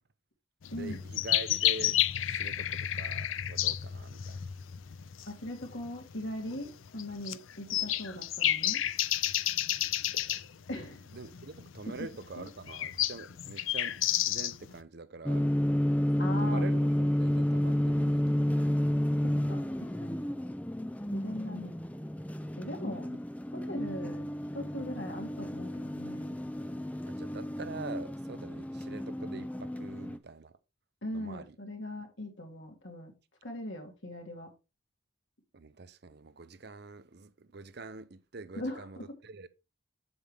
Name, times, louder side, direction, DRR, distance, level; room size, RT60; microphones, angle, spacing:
sound 1, 0.6-14.8, left 12 dB, 90° left, 0.5 m, -31 dB
voice 1, 0.7-4.4 11.1-15.5 16.4-18.7 27.0-30.5 31.1-31.6 35.5-39.5, right 3 dB, 55° right, 0.7 m, -45 dB
voice 2, 5.3-8.8 10.7-11.0 11.9-12.0 12.3-12.5 16.2-16.7 19.2-20.2 21.1-21.8 22.6-23.1 23.5-24.3 24.5-26.4 31.0-33.1 33.4-34.5 38.5-39.1, left 1 dB, 70° left, 2.8 m, -40 dB
sound 2, 15.2-30.2, left 1 dB, 5° left, 0.5 m, -31 dB
7.9 x 7.2 x 3.4 m
head